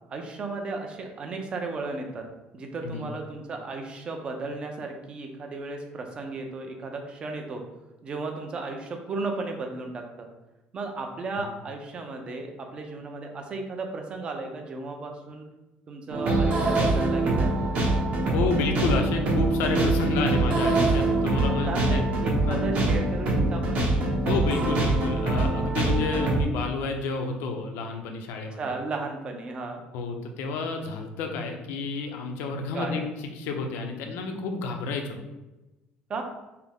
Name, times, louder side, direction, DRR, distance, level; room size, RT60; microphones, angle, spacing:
voice 1, 0.1-2.3 2.5-7.6 8.0-10.3 10.7-15.5 15.9-17.5 20.8-21.0 21.4-23.8 28.5-29.8 32.7-33.1 36.1-36.2, right 3 dB, 30° right, 3 dB, 0.6 m, -35 dB
voice 2, 2.8-3.1 11.4-11.5 18.3-22.0 22.5-22.6 24.3-28.6 29.9-33.0 33.4-35.2, left 4 dB, 85° left, 4 dB, 0.6 m, -30 dB
sound 1, 16.1-26.4, right 2 dB, 45° right, 1.0 m, -24 dB
5.7 x 2.1 x 3.5 m, 1.0 s
cardioid pair, 170°, 4 cm